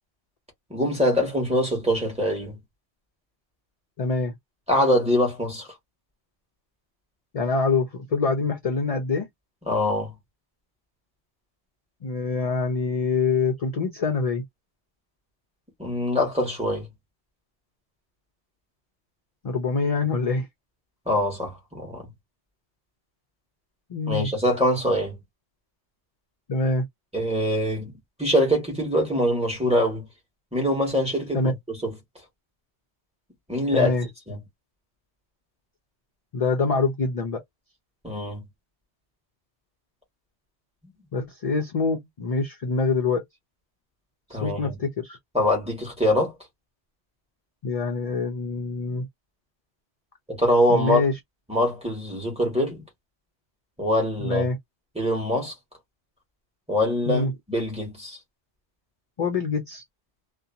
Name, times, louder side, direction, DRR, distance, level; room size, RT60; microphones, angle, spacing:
voice 1, 0.7-2.6 4.7-5.7 9.7-10.1 15.8-16.9 21.1-22.1 24.1-25.2 27.1-27.9 28.2-30.1 30.5-31.5 33.5-34.0 34.3-34.4 38.0-38.4 44.3-44.7 45.3-46.3 50.3-51.0 51.5-52.8 53.8-54.5 54.9-55.5 56.7-58.2, left 1 dB, 5° right, 1.3 m, -23 dB
voice 2, 4.0-4.3 7.3-9.3 12.0-14.4 19.4-20.5 23.9-24.3 26.5-26.9 31.3-31.5 33.7-34.1 36.3-37.4 41.1-43.2 44.3-45.2 47.6-49.1 50.7-51.2 54.2-54.6 57.1-57.3 59.2-59.8, left 4 dB, 50° left, 0.4 m, -25 dB
2.8 x 2.2 x 2.5 m
omnidirectional pair, 1.2 m